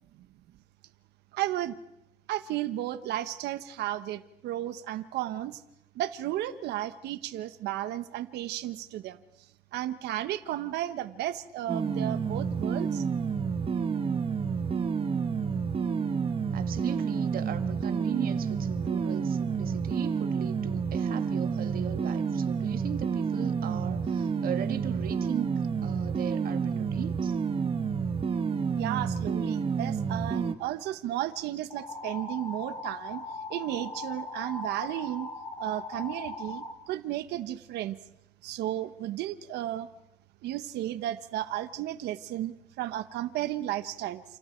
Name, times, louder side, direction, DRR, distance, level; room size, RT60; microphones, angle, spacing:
voice 1, 1.3-1.7 2.3-5.6 5.9-9.2 9.7-13.0 28.8-33.2 33.5-35.3 35.6-38.0 38.4-39.9 40.4-44.2, right 13 dB, 80° right, 1.2 m, -33 dB
sound 1, 11.7-30.5, right 6 dB, 35° right, 1.4 m, -29 dB
voice 2, 16.5-25.5 25.8-27.4, right 10 dB, 60° right, 1.7 m, -38 dB
sound 2, 31.7-36.7, left 2 dB, 30° left, 5.8 m, -39 dB
30.0 x 29.0 x 4.6 m
cardioid pair, 110°, 17 cm